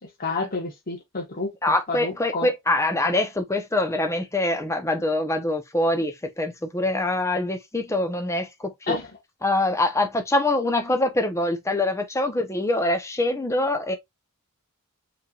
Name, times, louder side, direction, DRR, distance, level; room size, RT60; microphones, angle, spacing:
voice 1, 0.2-2.5 8.9-9.1, left 3 dB, 40° left, 1.3 m, -30 dB
voice 2, 1.6-9.0 9.4-14.0, left 2 dB, 15° left, 0.8 m, -24 dB
5.4 x 3.3 x 2.4 m
head